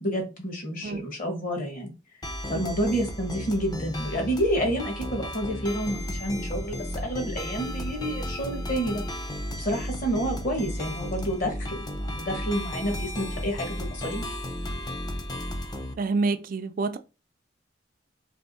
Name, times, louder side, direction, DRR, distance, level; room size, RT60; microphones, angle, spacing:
voice 1, 0.0-1.9 2.5-9.0 9.6-14.3, equal, 45° left, 1.3 m, -29 dB
sound 1, 2.2-16.0, equal, 20° left, 0.5 m, -34 dB
voice 2, 16.0-17.0, right 3 dB, 45° right, 0.3 m, -27 dB
3.4 x 2.9 x 4.0 m
head